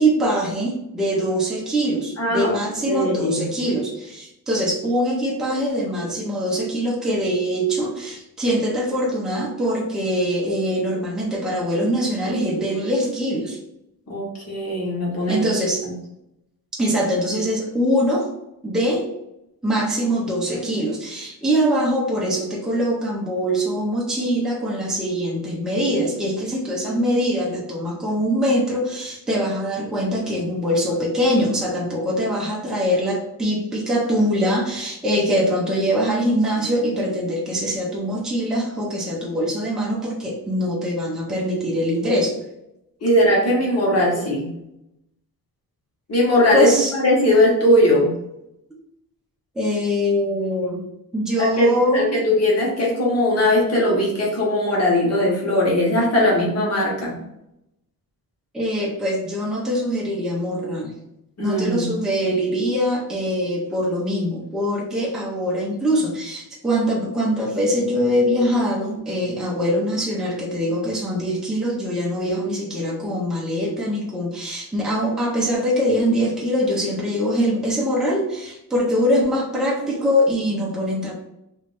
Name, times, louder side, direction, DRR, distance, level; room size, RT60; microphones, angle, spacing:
voice 1, 0.0-13.6 15.3-15.8 16.8-18.3 18.6-19.0 19.6-42.3 46.5-46.9 49.5-50.8 51.1-52.4 58.5-60.9 61.4-81.1, equal, ahead, -4 dB, 0.6 m, -23 dB
voice 2, 2.2-2.6 2.9-3.5 14.1-15.5 43.0-44.5 46.1-46.7 47.0-48.1 51.4-51.7 51.9-57.2 61.4-61.9, left 1 dB, 40° left, -4 dB, 1.3 m, -19 dB
3.1 x 2.6 x 3.2 m, 0.85 s
wide cardioid pair, 170°, 37 cm